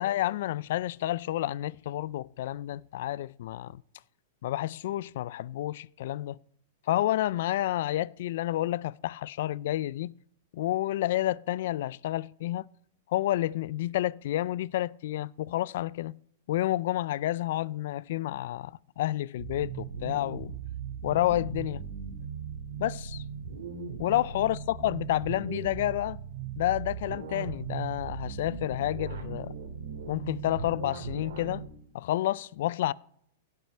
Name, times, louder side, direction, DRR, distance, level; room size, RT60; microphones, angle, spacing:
voice 1, 0.0-3.8 4.4-6.4 6.9-10.1 10.5-12.7 13.1-16.2 16.5-20.5 21.0-21.8 22.8-23.2 24.0-26.2 26.6-29.5 30.1-31.6 31.9-32.9, left 14 dB, 60° left, 0.3 m, -30 dB
sound 1, 19.4-31.7, right 7 dB, 85° right, 2.3 m, -38 dB
17.0 x 6.0 x 4.3 m
supercardioid pair, 160°, 0 cm